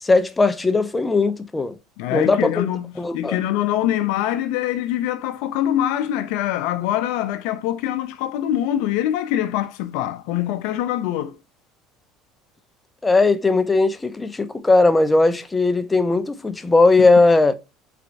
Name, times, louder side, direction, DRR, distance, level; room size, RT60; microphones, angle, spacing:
voice 1, 0.0-1.8 2.1-2.7 3.0-3.4 13.0-17.5, left 3 dB, 15° left, 0.5 m, -18 dB
voice 2, 2.0-11.4, left 12 dB, 75° left, 0.4 m, -24 dB
3.9 x 3.4 x 2.5 m
supercardioid pair, 90°, 0 cm